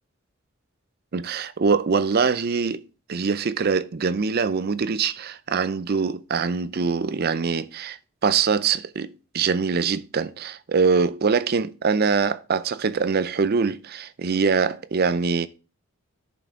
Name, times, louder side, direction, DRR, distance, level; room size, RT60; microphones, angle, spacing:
voice 1, 1.1-2.8 3.1-15.5, right 5 dB, 45° right, 0.5 m, -23 dB
10.5 x 5.8 x 3.7 m
head